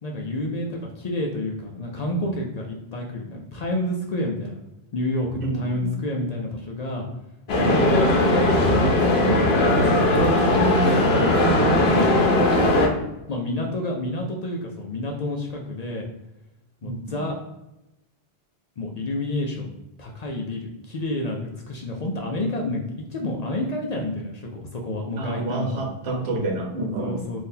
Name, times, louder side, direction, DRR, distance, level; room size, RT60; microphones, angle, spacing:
voice 1, 0.0-4.6 4.9-7.1 7.5-8.5 9.3-10.1 10.8-12.2 13.3-16.1 16.8-17.4 18.8-19.7 20.0-22.8 23.1-25.9 27.0-27.4, left 1 dB, 55° left, 0 dB, 0.5 m, -29 dB
voice 2, 5.4-5.9 8.3-8.4 9.6-9.8 11.1-11.4 16.8-17.2 25.2-27.3, right 2 dB, 85° right, 2 dB, 1.0 m, -30 dB
sound 1, 7.5-12.9, left 1 dB, 80° left, 0.9 m, -19 dB
3.7 x 2.6 x 2.7 m, 0.93 s
omnidirectional pair, 1.0 m